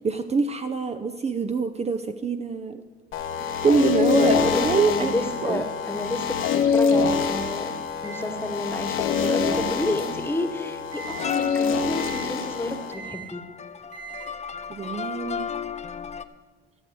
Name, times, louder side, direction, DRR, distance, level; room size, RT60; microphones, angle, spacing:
voice 1, 0.0-2.8 3.6-5.1 5.4-5.6 14.7-15.5, right 5 dB, 30° right, 8 dB, 0.6 m, -25 dB
sound 1, 3.1-12.9, left 6 dB, 80° left, 1.2 m, -25 dB
voice 2, 4.0-7.7 8.0-13.4, left 2 dB, 10° left, 7 dB, 1.3 m, -31 dB
Microwave oven, 8.0-10.4 10.9-11.2 11.9-12.3 12.9-13.3 13.9-14.3, right 6 dB, 75° right, 4.6 m, -42 dB
sound 2, 11.1-16.2, left 7 dB, 35° left, 0.6 m, -34 dB
13.5 x 6.7 x 7.9 m, 1.4 s
cardioid pair, 90°, 20 cm